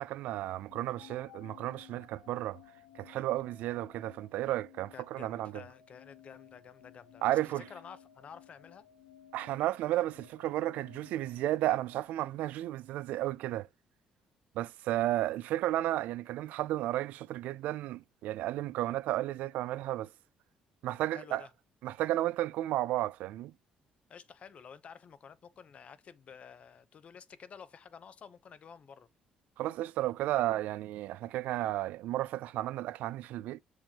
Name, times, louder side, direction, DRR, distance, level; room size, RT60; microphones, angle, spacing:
voice 1, 0.0-2.6 3.0-5.6 7.2-7.6 9.3-13.7 14.6-20.1 20.8-21.4 21.8-23.5 29.6-33.6, right 14 dB, 80° right, 0.3 m, -33 dB
sound 1, 0.7-12.8, left 10 dB, 85° left, 2.0 m, -57 dB
voice 2, 4.9-8.9 21.1-21.5 24.1-29.1, left 6 dB, 50° left, 0.8 m, -51 dB
7.0 x 4.8 x 2.9 m
supercardioid pair, 75°, 3 cm